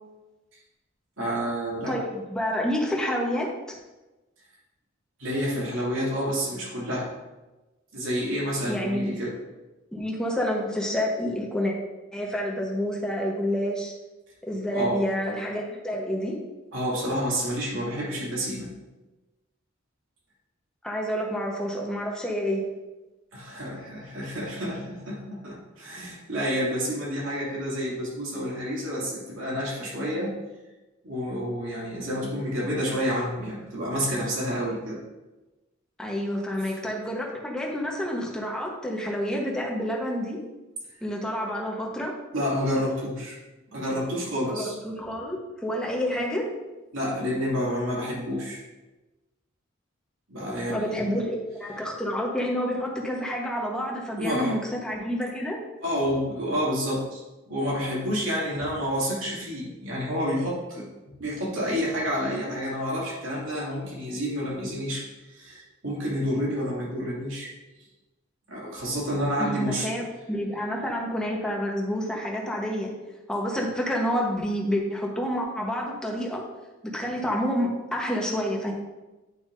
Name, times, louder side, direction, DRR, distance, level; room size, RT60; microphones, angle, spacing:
voice 1, 1.2-2.0 5.2-7.1 7.9-9.3 14.7-15.0 16.7-18.7 23.3-30.3 31.0-35.0 36.6-36.7 42.3-43.4 43.7-44.7 46.9-48.6 50.3-51.1 54.2-54.6 55.8-57.2 57.5-60.9 61.2-67.5 68.5-69.9, equal, 75° right, -5 dB, 2.5 m, -29 dB
voice 2, 1.9-3.8 8.7-9.2 9.9-11.7 12.1-13.9 14.5-16.4 20.8-22.6 36.0-40.4 41.0-42.1 44.5-46.4 50.7-55.6 69.4-72.9 73.3-76.4 76.9-78.7, equal, 5° left, -2 dB, 1.1 m, -28 dB
9.2 x 5.8 x 2.7 m, 1.1 s
head